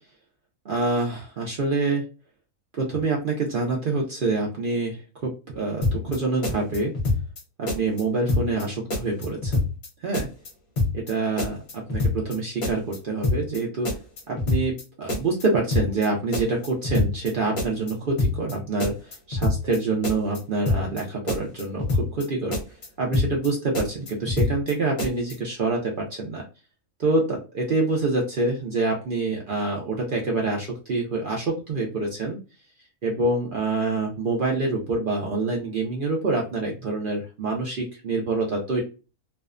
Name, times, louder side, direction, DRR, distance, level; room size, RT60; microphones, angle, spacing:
voice 1, 0.6-2.0 2.7-6.9 7.6-9.7 10.0-10.3 10.9-11.6 11.9-13.9 14.3-18.9 19.3-22.6 23.0-26.4 27.0-32.4 33.0-38.8, right 3 dB, 70° right, -1 dB, 0.5 m, -26 dB
sound 1, 5.8-6.2 6.4-7.4 7.7-8.0 8.3-8.6 8.9-9.9 10.1-10.5 10.8-11.1 11.4-12.4 12.6-13.0 13.2-13.6 13.9-14.8 15.1-15.4 15.7-16.1 16.3-17.3 17.6-17.9 18.2-18.5 18.8-19.8 20.0-20.4 20.7-21.0 21.3-22.3 22.5-22.9 23.1-23.5 23.7-24.7 25.0-25.3, left 2 dB, 50° left, 0.9 m, -25 dB
2.6 x 2.2 x 2.4 m, 0.33 s
omnidirectional pair, 1.5 m